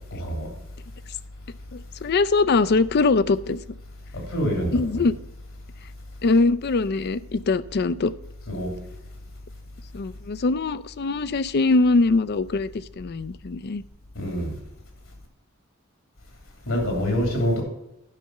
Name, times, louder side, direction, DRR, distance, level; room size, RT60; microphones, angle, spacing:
voice 1, 0.1-0.5 4.1-5.1 8.5-8.7 14.1-14.6 16.7-17.6, equal, 75° left, 3.1 m, -26 dB
voice 2, 1.7-3.6 4.7-5.2 6.2-8.1 9.9-13.8, left 3 dB, 50° left, 0.4 m, -22 dB
10.5 x 5.7 x 6.5 m
head